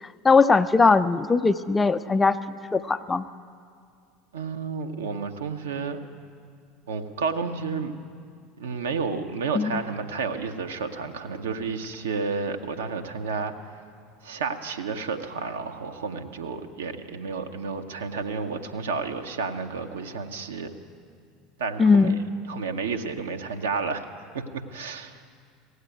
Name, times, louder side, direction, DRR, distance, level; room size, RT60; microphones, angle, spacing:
voice 1, 0.0-2.4 2.7-3.2 9.5-9.8 21.8-22.2, left 4 dB, 15° left, 11 dB, 0.4 m, -20 dB
voice 2, 4.3-6.0 6.9-7.9 8.6-13.5 14.2-20.7 21.6-22.2 22.5-24.0 24.7-25.2, right 5 dB, 70° right, 6 dB, 0.7 m, -31 dB
16.5 x 8.1 x 9.1 m, 2.2 s
figure-of-eight pair, 70°, 0 cm